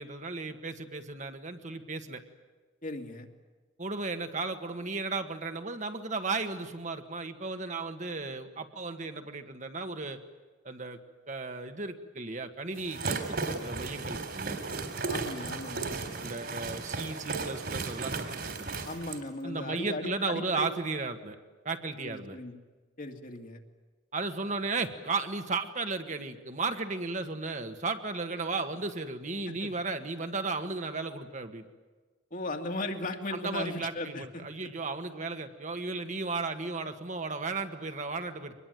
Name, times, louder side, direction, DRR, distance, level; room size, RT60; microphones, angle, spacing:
voice 1, 0.0-2.2 3.8-10.2 10.6-11.0 11.3-14.6 16.2-18.1 18.4-18.7 19.4-21.4 21.6-22.4 24.1-31.6 33.3-38.5, right 3 dB, 40° right, 7 dB, 1.6 m, -35 dB
voice 2, 2.8-3.3 15.1-16.0 18.8-20.7 22.0-22.6 23.0-23.6 29.5-29.7 32.3-34.4, left 2 dB, 45° left, 4 dB, 2.4 m, -37 dB
sound 1, 12.7-19.2, right 4 dB, 55° right, 3.7 m, -35 dB
24.5 x 21.0 x 9.3 m, 1.3 s
head